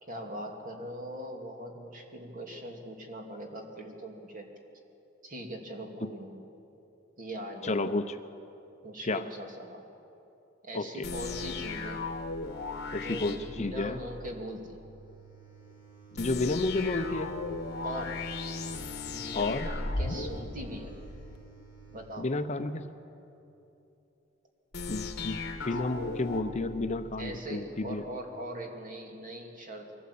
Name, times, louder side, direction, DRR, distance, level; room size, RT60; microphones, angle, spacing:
voice 1, 0.0-4.5 5.2-6.4 7.2-7.8 8.8-9.9 10.6-12.0 12.9-14.8 17.8-18.3 19.0-20.9 21.9-22.4 27.2-29.9, right 1 dB, 45° right, 2 dB, 2.6 m, -41 dB
voice 2, 7.6-8.1 9.1-9.2 10.7-11.1 12.9-14.0 16.1-17.3 19.3-19.7 22.2-22.9 24.9-25.4 25.7-28.0, left 2 dB, 35° left, 9 dB, 0.7 m, -31 dB
sound 1, 11.0-14.3 16.2-21.4 24.7-27.4, left 3 dB, 55° left, 1.6 m, -37 dB
sound 2, 14.6-22.2, right 6 dB, 20° right, 5.7 m, -54 dB
23.0 x 17.0 x 8.5 m, 2.9 s
head